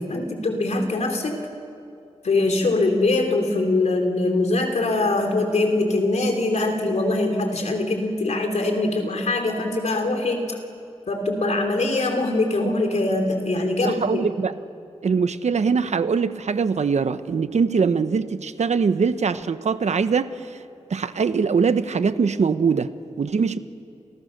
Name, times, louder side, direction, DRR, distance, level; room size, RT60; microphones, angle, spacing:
voice 1, 0.0-1.5 2.2-10.6 11.1-14.3, left 2 dB, 75° left, 4 dB, 3.8 m, -23 dB
voice 2, 13.8-14.5 15.0-20.3 20.9-23.6, right 5 dB, 80° right, 11 dB, 1.1 m, -22 dB
30.0 x 29.5 x 6.7 m, 2.5 s
wide cardioid pair, 115°, 12 cm